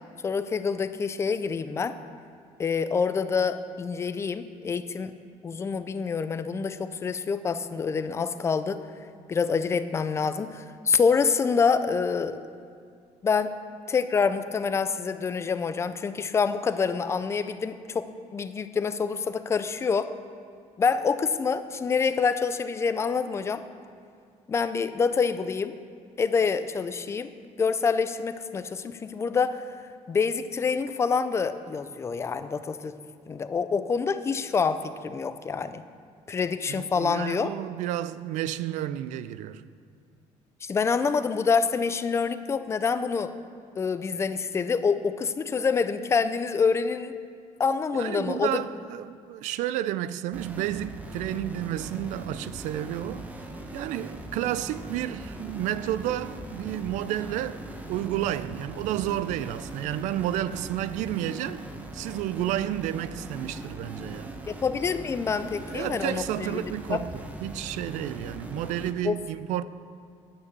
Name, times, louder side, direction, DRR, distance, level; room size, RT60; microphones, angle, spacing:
voice 1, 0.2-2.0 2.6-5.1 5.4-8.8 9.3-12.4 13.2-13.5 13.9-20.1 20.8-23.6 24.5-25.8 26.2-27.3 27.6-29.7 30.1-32.9 33.3-35.8 36.3-37.5 40.6-43.3 43.8-47.1 47.6-48.7 64.5-67.0 69.0-69.2, left 5 dB, 20° left, 0.4 m, -26 dB
voice 2, 36.7-39.6 47.9-53.3 53.7-61.6 61.9-64.4 65.6-69.6, right 12 dB, 85° right, 0.4 m, -31 dB
sound 1, 50.3-68.9, right 1 dB, 10° right, 0.9 m, -40 dB
9.8 x 8.9 x 6.7 m
cardioid pair, 160°, 12 cm